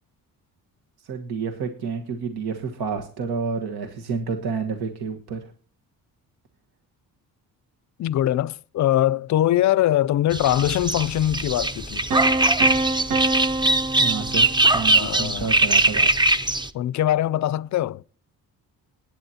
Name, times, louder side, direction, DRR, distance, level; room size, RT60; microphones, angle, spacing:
voice 1, 1.0-5.5 14.0-16.1, right 5 dB, 80° right, 1.5 m, -29 dB
voice 2, 8.0-12.1 14.9-15.5 16.7-18.0, left 13 dB, 50° left, 0.4 m, -22 dB
sound 1, 10.3-16.7, right 2 dB, 10° right, 0.6 m, -21 dB
sound 2, 12.1-15.0, right 2 dB, 60° right, 1.2 m, -26 dB
20.0 x 9.3 x 2.8 m
cardioid pair, 85°, 38 cm